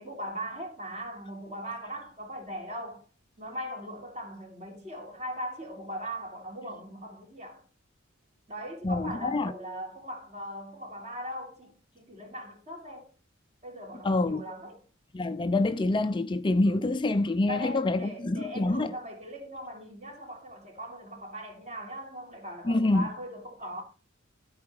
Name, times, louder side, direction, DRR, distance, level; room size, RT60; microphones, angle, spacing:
voice 1, 0.0-3.0 3.4-7.6 8.5-13.1 13.6-14.8 17.4-23.8, equal, 35° right, 3.2 m, -39 dB
voice 2, 8.8-9.5 14.0-14.4 15.1-18.9 22.7-23.1, left 2 dB, 25° left, 0.4 m, -26 dB
13.0 x 4.8 x 4.7 m
head